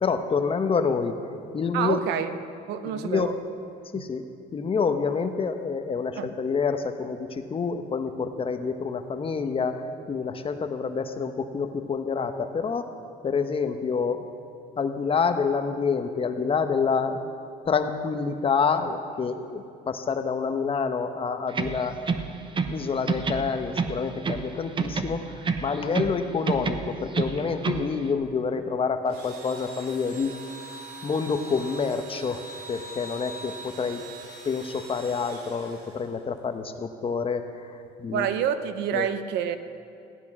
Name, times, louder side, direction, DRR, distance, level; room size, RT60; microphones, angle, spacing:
voice 1, 0.0-2.0 2.9-3.4 3.9-4.2 4.5-12.9 13.2-14.3 14.8-17.2 17.6-22.0 22.7-30.4 31.0-34.0 34.4-38.3 38.9-39.1, left 5 dB, 35° left, 8 dB, 1.0 m, -27 dB
voice 2, 1.7-2.3 2.7-3.3 3.9-4.0 6.2-6.3 38.1-39.6, right 9 dB, 90° right, 11 dB, 0.8 m, -27 dB
sound 1, 21.5-22.8 23.1-24.5 24.8-26.2 26.5-27.9, right 5 dB, 30° right, 0.9 m, -28 dB
Engine / Drill, 29.0-36.4, right 2 dB, 70° right, 2.8 m, -43 dB
15.5 x 10.5 x 6.0 m, 2.5 s
cardioid pair, 110°, 17 cm